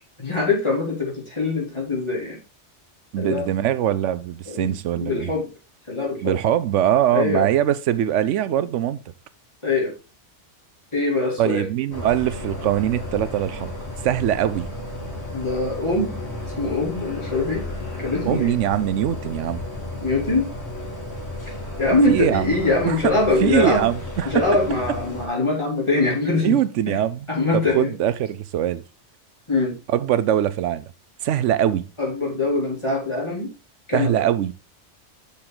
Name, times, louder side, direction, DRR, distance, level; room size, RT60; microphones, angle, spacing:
voice 1, 0.2-2.4 3.2-3.5 4.5-5.5 5.9-6.4 7.1-7.5 9.6-9.9 10.9-11.6 15.3-16.2 16.6-17.6 18.0-18.6 20.0-20.5 21.8-23.8 24.2-26.6 26.9-27.0 27.3-27.9 29.5-29.8 32.0-33.5 33.9-34.2, left 3 dB, 25° left, 3.4 m, -23 dB
voice 2, 3.1-5.3 6.2-9.0 11.4-13.7 14.0-14.7 18.2-19.6 22.1-22.5 22.9-23.1 23.4-24.4 26.4-27.2 27.5-28.8 29.9-30.9 31.2-31.9 33.9-34.5, right 11 dB, 85° right, 0.9 m, -22 dB
sound 1, 11.9-25.3, left 1 dB, 60° left, 2.8 m, -33 dB
7.3 x 6.4 x 3.8 m
omnidirectional pair, 1.2 m